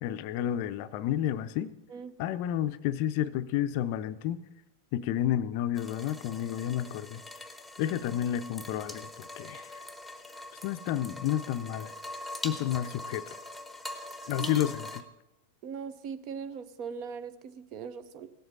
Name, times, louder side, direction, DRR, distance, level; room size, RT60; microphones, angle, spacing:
voice 1, 0.0-1.7 2.2-4.4 4.9-7.2 7.8-9.8 10.6-11.9 12.4-13.2 14.3-15.0, left 11 dB, 45° left, 13 dB, 0.5 m, -31 dB
sound 1, 5.7-15.0, left 2 dB, ahead, 1.1 m, -42 dB
voice 2, 15.6-18.3, right 6 dB, 40° right, 12 dB, 0.8 m, -40 dB
17.5 x 7.9 x 5.5 m, 0.99 s
figure-of-eight pair, 90°, 0 cm